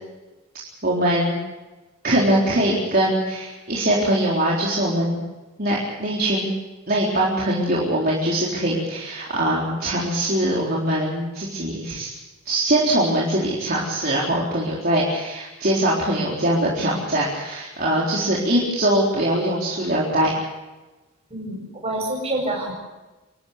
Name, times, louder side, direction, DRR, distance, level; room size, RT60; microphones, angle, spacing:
voice 1, 0.8-1.4 2.0-5.2 5.6-6.5 6.9-12.1 12.5-20.3, right 1 dB, 40° right, -5 dB, 4.1 m, -22 dB
voice 2, 21.3-22.7, right 1 dB, 25° right, 0 dB, 7.8 m, -27 dB
29.5 x 13.5 x 8.4 m, 1.2 s
head